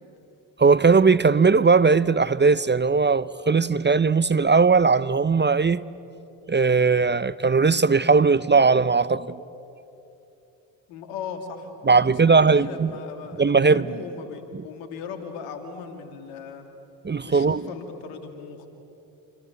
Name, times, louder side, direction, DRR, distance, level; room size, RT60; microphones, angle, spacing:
voice 1, 0.6-5.8 6.5-9.4 11.9-12.9 13.4-13.9 17.0-17.6, right 4 dB, 20° right, 0.7 m, -19 dB
voice 2, 10.9-16.6 17.2-18.7, left 6 dB, 85° left, 2.7 m, -38 dB
27.5 x 26.5 x 8.2 m
hypercardioid pair, 45°, 50 cm